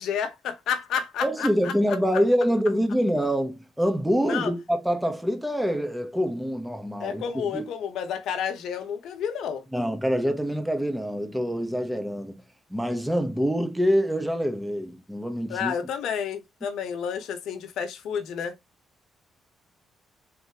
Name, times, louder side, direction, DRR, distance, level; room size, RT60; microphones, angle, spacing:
voice 1, 0.0-2.0 4.3-4.5 7.0-9.6 15.5-18.5, left 7 dB, 80° left, 0.9 m, -30 dB
voice 2, 1.2-7.7 9.7-12.4 12.7-15.7, equal, 5° right, 1.1 m, -25 dB
4.2 x 3.4 x 2.9 m
cardioid pair, 90°, 0 cm